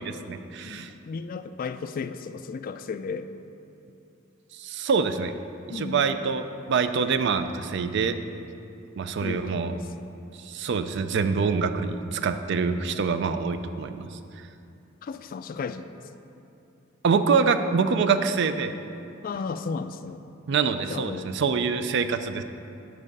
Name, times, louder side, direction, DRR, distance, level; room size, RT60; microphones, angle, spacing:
voice 1, 0.0-0.9 4.5-5.3 5.7-8.2 9.0-9.8 10.4-14.2 17.0-18.7 20.5-22.4, right 5 dB, 60° right, 10 dB, 0.4 m, -25 dB
voice 2, 0.6-3.3 5.7-6.1 9.2-9.9 12.7-13.0 15.0-15.9 19.2-20.2 20.9-21.3, left 5 dB, 45° left, 11 dB, 0.3 m, -34 dB
7.5 x 4.8 x 6.5 m, 2.7 s
head